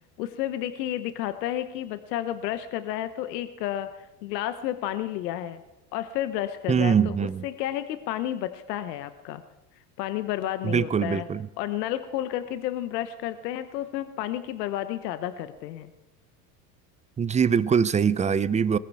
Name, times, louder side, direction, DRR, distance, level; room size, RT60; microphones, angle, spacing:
voice 1, 0.2-5.6 5.9-9.4 10.0-11.3 11.6-15.9, left 12 dB, 85° left, 11 dB, 1.1 m, -31 dB
voice 2, 6.7-7.5 10.6-11.5 17.2-18.8, right 7 dB, 15° right, 17 dB, 0.5 m, -23 dB
20.0 x 14.5 x 4.7 m, 1.0 s
supercardioid pair, 105°, 48 cm